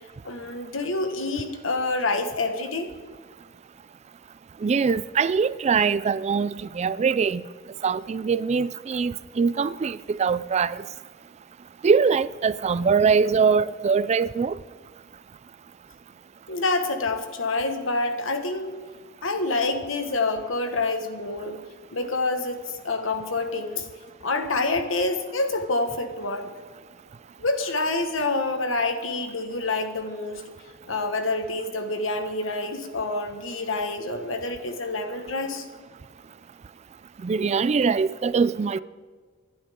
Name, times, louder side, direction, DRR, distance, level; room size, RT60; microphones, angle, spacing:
voice 1, 0.2-2.9 16.5-18.7 19.2-21.6 21.9-23.9 24.2-26.5 27.4-30.4 30.9-35.6, left 2 dB, 80° left, 1.5 m, -27 dB
voice 2, 4.6-7.4 7.8-10.8 11.8-14.6 37.2-38.8, right 5 dB, 35° right, 0.3 m, -22 dB
26.5 x 11.5 x 3.7 m
head